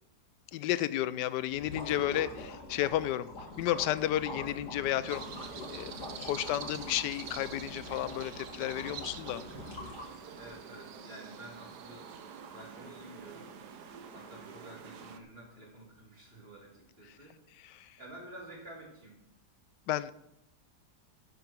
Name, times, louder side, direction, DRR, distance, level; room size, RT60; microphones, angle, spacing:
voice 1, 0.5-3.3 3.6-5.3 5.7-9.4 17.6-18.0 19.9-20.1, left 13 dB, 90° left, 16 dB, 1.2 m, -32 dB
sound 1, 1.6-10.4, left 1 dB, 75° left, 3.3 m, -44 dB
sound 2, 5.1-15.2, right 7 dB, 75° right, 1.5 m, -46 dB
voice 2, 9.5-9.9 10.3-12.1 12.4-13.5 14.1-17.4 18.0-19.2, right 1 dB, 35° right, -3 dB, 3.8 m, -50 dB
11.0 x 10.5 x 4.6 m, 0.79 s
omnidirectional pair, 1.8 m